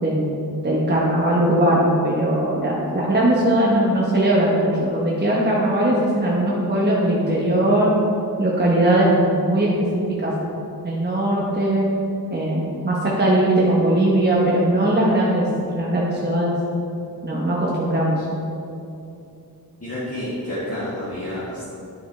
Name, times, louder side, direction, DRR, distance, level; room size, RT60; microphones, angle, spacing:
voice 1, 0.0-7.9 8.4-9.7 9.9-10.5 10.8-11.9 12.3-15.5 15.7-16.5 17.2-18.2, right 1 dB, 25° right, -5 dB, 1.1 m, -20 dB
voice 2, 19.8-21.7, left 1 dB, 35° left, -11 dB, 1.7 m, -29 dB
9.5 x 5.3 x 3.3 m, 2.7 s
wide cardioid pair, 70°, 39 cm